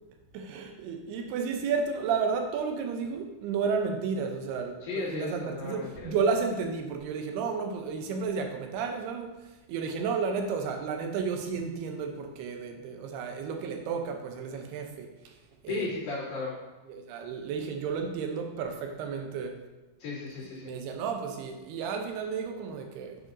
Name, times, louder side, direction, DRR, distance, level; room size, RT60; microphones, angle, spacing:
voice 1, 0.3-9.3 9.7-15.1 15.6-15.9 16.9-19.6 20.6-23.2, right 5 dB, 85° right, 4 dB, 2.8 m, -32 dB
voice 2, 4.8-6.1 15.7-16.5 20.0-20.6, left 3 dB, 65° left, -9 dB, 4.4 m, -35 dB
9.4 x 5.9 x 2.7 m, 1.1 s
omnidirectional pair, 4.5 m